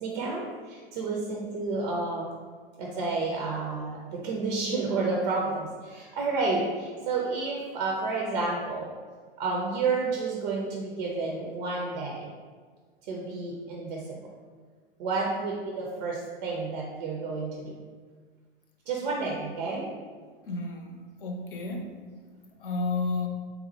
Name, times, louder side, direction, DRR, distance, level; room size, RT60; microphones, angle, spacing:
voice 1, 0.0-2.3 2.8-8.9 9.4-12.3 13.0-14.0 15.0-17.8 18.9-19.9, right 3 dB, 45° right, -2 dB, 0.6 m, -30 dB
voice 2, 20.5-21.9 22.6-23.3, left 3 dB, 60° left, 3 dB, 0.6 m, -31 dB
4.1 x 2.1 x 4.0 m, 1.6 s
figure-of-eight pair, 95°, 30 cm